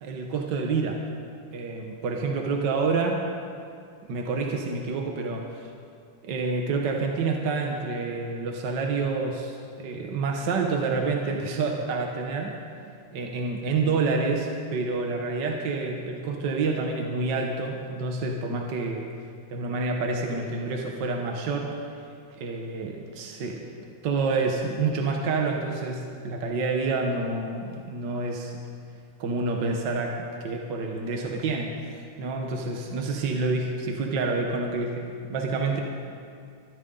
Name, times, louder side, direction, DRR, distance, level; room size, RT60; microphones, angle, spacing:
voice 1, 0.0-1.0 1.5-3.2 4.1-5.7 6.2-12.5 13.1-19.1 19.5-21.7 22.4-23.6 24.0-28.5 29.2-31.7 32.2-35.8, right 3 dB, 60° right, 1 dB, 1.2 m, -28 dB
22.0 x 13.5 x 3.9 m, 2.3 s
omnidirectional pair, 3.5 m